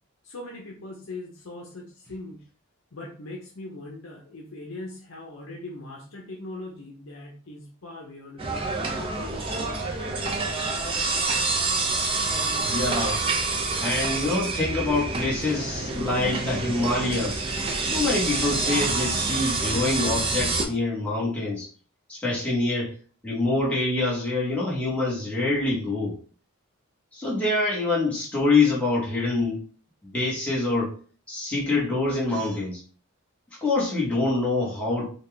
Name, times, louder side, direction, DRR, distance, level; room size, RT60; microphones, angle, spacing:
voice 1, 0.2-2.4 2.9-9.8, left 2 dB, 70° left, -1 dB, 0.7 m, -40 dB
sound 1, 8.4-20.6, right 3 dB, 25° right, 0.5 m, -27 dB
voice 2, 12.3-13.3 13.8-17.4 17.8-21.7 22.1-22.9 23.2-26.1 27.1-29.6 30.0-30.9 31.3-32.8 33.6-35.1, left 2 dB, 5° left, -7 dB, 1.2 m, -25 dB
4.1 x 2.3 x 3.3 m, 0.41 s
head